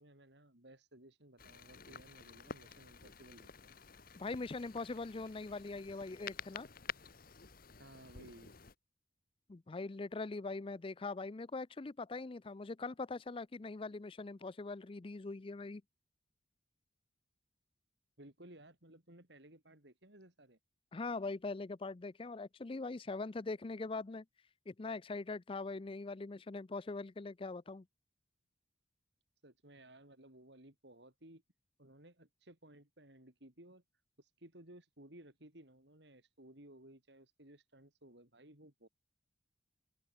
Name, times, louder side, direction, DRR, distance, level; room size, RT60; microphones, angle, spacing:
voice 1, 0.0-3.7 7.8-8.5 18.2-20.6 29.4-31.4 31.8-33.8 34.2-38.9, right 1 dB, 60° right, 4.7 m, -58 dB
sound 1, 1.4-8.8, left 6 dB, 50° left, 1.4 m, -50 dB
voice 2, 4.2-6.7 9.5-15.8 20.9-24.2 24.7-27.8, left 3 dB, 30° left, 0.5 m, -42 dB
open air
head